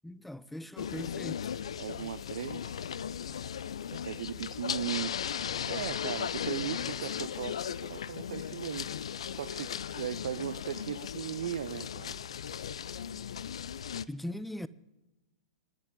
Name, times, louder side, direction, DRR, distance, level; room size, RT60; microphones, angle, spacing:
voice 1, 0.0-1.5 14.1-14.7, left 1 dB, 5° left, 0.6 m, -40 dB
sound 1, 0.8-14.1, left 8 dB, 70° left, 0.6 m, -37 dB
voice 2, 1.8-2.8 3.9-5.2 5.4-12.2, right 10 dB, 65° right, 0.4 m, -38 dB
27.0 x 11.5 x 3.8 m
hypercardioid pair, 115°, 3 cm